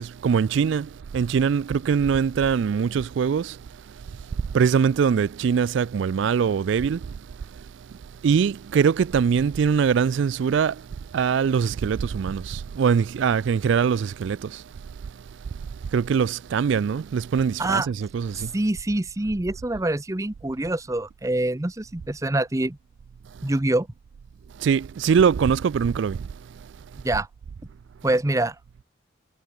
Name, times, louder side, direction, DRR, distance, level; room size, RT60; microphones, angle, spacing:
voice 1, 0.0-3.6 4.5-7.2 8.2-10.9 11.1-14.6 15.9-18.5 24.6-26.3, right 6 dB, 65° right, 0.3 m, -22 dB
voice 2, 18.3-22.8 23.4-23.9 27.0-27.3 28.0-28.6, right 1 dB, 15° right, 0.6 m, -25 dB
head